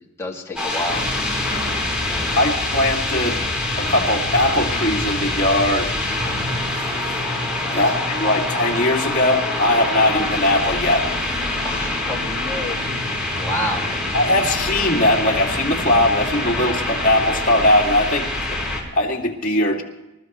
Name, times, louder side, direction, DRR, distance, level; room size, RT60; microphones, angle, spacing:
voice 1, 0.2-1.0 2.1-2.5 7.6-7.8 11.6-14.0, left 1 dB, 15° left, -2 dB, 2.2 m, -30 dB
sound 1, 0.6-18.8, left 2 dB, 5° right, 4.5 m, -25 dB
voice 2, 2.3-3.4 3.8-5.9 7.0-7.3 7.7-11.0 14.1-18.6 18.9-19.8, left 1 dB, 40° left, -2 dB, 2.4 m, -20 dB
28.0 x 14.0 x 3.1 m, 0.96 s
head